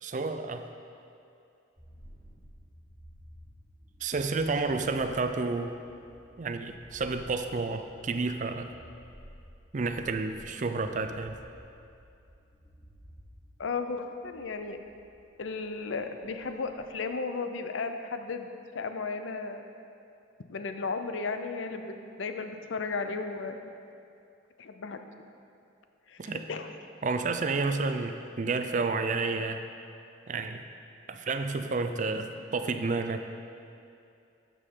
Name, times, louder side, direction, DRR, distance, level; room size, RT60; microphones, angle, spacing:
voice 1, 0.0-0.7 4.0-5.7 6.4-8.7 9.7-11.4 26.2-26.5 27.0-29.6 30.3-30.6 31.1-33.2, right 3 dB, 40° right, 8 dB, 0.4 m, -30 dB
sound 1, 1.8-17.0, equal, 5° left, 1.4 m, -54 dB
voice 2, 13.6-14.8 15.4-19.6 20.5-23.6 24.6-25.0 26.1-26.7 32.1-32.3, left 4 dB, 75° left, 7 dB, 0.6 m, -35 dB
11.5 x 6.5 x 3.8 m, 2.6 s
head